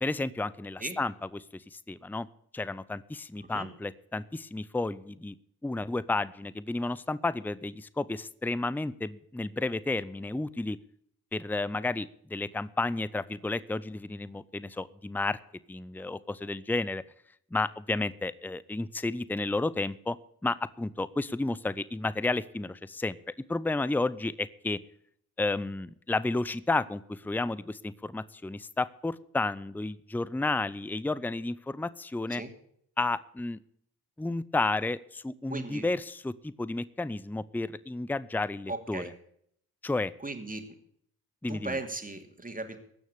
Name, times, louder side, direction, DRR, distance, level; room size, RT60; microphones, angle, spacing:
voice 1, 0.0-2.3 2.5-5.3 5.6-10.8 11.3-15.4 15.7-17.0 17.5-20.2 20.4-23.2 23.5-24.8 25.4-32.4 33.0-33.6 34.2-39.0 39.8-40.1 41.4-41.8, left 2 dB, 5° left, 18 dB, 0.6 m, -32 dB
voice 2, 35.5-35.8 38.7-39.1 40.2-40.7 41.5-42.8, right 2 dB, 20° right, 6 dB, 2.7 m, -37 dB
16.5 x 6.4 x 8.5 m, 0.67 s
supercardioid pair, 50°, 38 cm